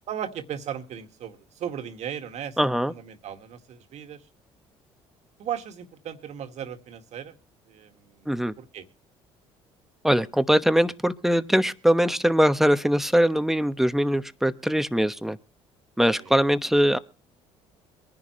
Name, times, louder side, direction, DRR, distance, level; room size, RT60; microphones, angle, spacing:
voice 1, 0.1-4.2 5.4-7.3 7.7-8.9 16.0-16.3, right 9 dB, 60° right, 8 dB, 2.0 m, -37 dB
voice 2, 2.6-2.9 8.3-8.5 10.0-15.4 16.0-17.0, equal, 5° right, 12 dB, 1.1 m, -22 dB
23.0 x 11.0 x 3.2 m, 0.35 s
supercardioid pair, 75°, 13 cm